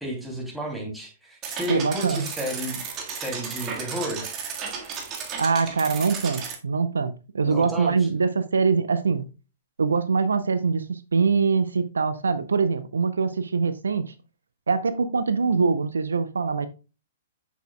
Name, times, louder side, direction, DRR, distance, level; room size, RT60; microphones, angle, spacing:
voice 1, 0.0-2.8 3.1-4.2 7.5-7.9, equal, ahead, 2.6 m, -32 dB
sound 1, 1.4-6.6, right 6 dB, 30° right, 1.5 m, -34 dB
voice 2, 1.7-2.3 5.4-9.3 9.8-14.1 14.7-16.7, right 5 dB, 80° right, 0.6 m, -23 dB
8.0 x 6.3 x 2.2 m
figure-of-eight pair, 115°, 0 cm